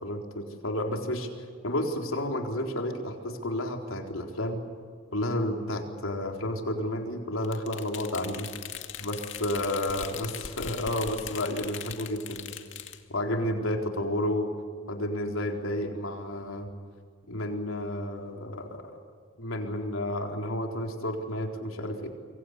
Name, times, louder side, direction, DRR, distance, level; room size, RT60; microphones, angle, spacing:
voice 1, 0.0-1.3 1.6-4.6 5.1-8.5 9.0-12.6 13.1-14.5 14.9-16.7 17.3-19.0 19.4-22.1, left 1 dB, 85° left, 3 dB, 4.3 m, -31 dB
sound 1, 7.4-13.0, left 8 dB, 65° left, 2.3 m, -40 dB
27.5 x 24.0 x 8.5 m, 2.1 s
head